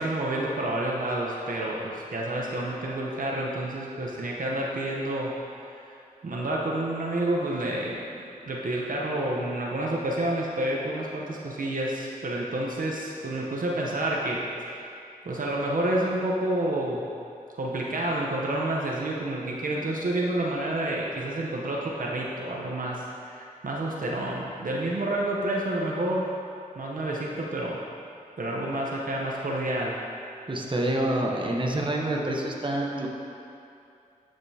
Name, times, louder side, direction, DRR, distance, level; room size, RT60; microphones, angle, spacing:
voice 1, 0.0-5.4 6.2-14.9 15.2-17.0 17.6-26.3 26.7-27.8 28.4-30.0, right 1 dB, 70° right, -3 dB, 0.8 m, -29 dB
voice 2, 30.5-33.1, right 1 dB, 35° right, -1 dB, 0.9 m, -27 dB
10.5 x 5.1 x 2.8 m, 2.6 s
cardioid pair, 50°, 15 cm